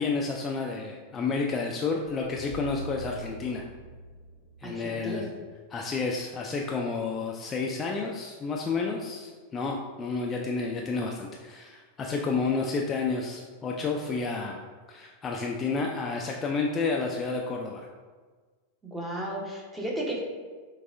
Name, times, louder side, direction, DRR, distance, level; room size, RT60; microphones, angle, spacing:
voice 1, 0.0-3.6 4.6-5.3 5.7-14.6 14.9-17.9, left 4 dB, 20° left, 0 dB, 0.3 m, -30 dB
sound 1, 2.1-6.2, right 1 dB, 70° left, 0.5 m, -44 dB
voice 2, 4.6-5.3 18.8-20.2, right 1 dB, 10° right, -2 dB, 0.8 m, -34 dB
5.9 x 2.3 x 2.5 m, 1.5 s
figure-of-eight pair, 90°, 0 cm